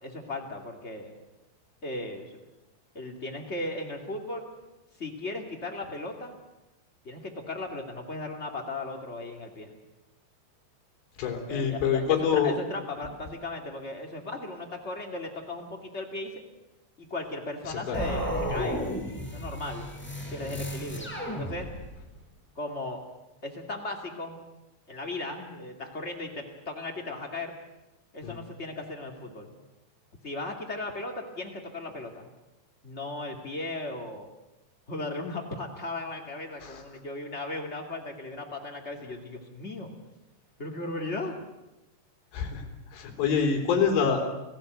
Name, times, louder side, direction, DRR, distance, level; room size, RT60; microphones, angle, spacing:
voice 1, 0.0-1.1 1.8-2.4 2.9-4.5 5.0-6.4 7.0-9.7 11.5-16.3 17.0-18.9 19.3-19.9 20.3-21.7 22.5-23.0 23.4-24.4 24.9-27.5 28.1-29.5 30.2-32.3 32.8-34.3 34.9-39.9 40.6-41.4, left 2 dB, 30° left, 1 dB, 1.3 m, -36 dB
voice 2, 11.2-12.6 17.7-18.0 28.2-28.4 36.6-36.8 42.3-44.2, left 6 dB, 65° left, 2 dB, 5.5 m, -26 dB
sound 1, 17.9-22.0, equal, ahead, 4.3 m, -33 dB
28.5 x 17.5 x 8.1 m, 1.0 s
omnidirectional pair, 5.5 m